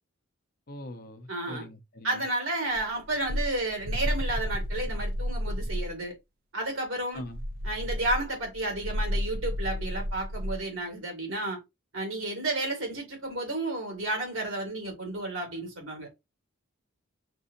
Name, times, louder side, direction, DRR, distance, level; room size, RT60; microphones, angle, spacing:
voice 1, 0.7-2.2 7.1-7.4, left 1 dB, 45° left, 0.7 m, -42 dB
voice 2, 1.3-1.7 2.0-6.2 6.5-7.2 7.6-11.6 11.9-16.1, right 2 dB, 80° right, 2.2 m, -32 dB
sound 1, 2.7-6.0 7.2-10.6, equal, 45° right, 0.4 m, -32 dB
6.0 x 2.7 x 2.6 m
head